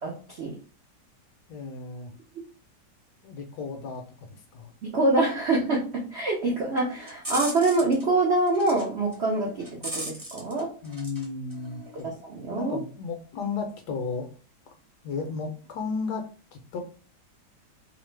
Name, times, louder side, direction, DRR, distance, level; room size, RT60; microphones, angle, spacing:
voice 1, 0.0-0.6 4.8-10.7 12.0-12.8, right 2 dB, 75° right, -2 dB, 0.6 m, -25 dB
voice 2, 1.5-2.1 3.2-4.7 10.8-12.1 12.5-14.3 14.7-14.8 15.0-16.2 16.5-16.8, left 4 dB, 70° left, 4 dB, 1.1 m, -34 dB
sound 1, 6.8-8.0 8.5-8.8 9.1-11.2 11.5-12.0, right 1 dB, 25° right, 0.4 m, -37 dB
3.1 x 2.0 x 3.2 m, 0.39 s
omnidirectional pair, 2.1 m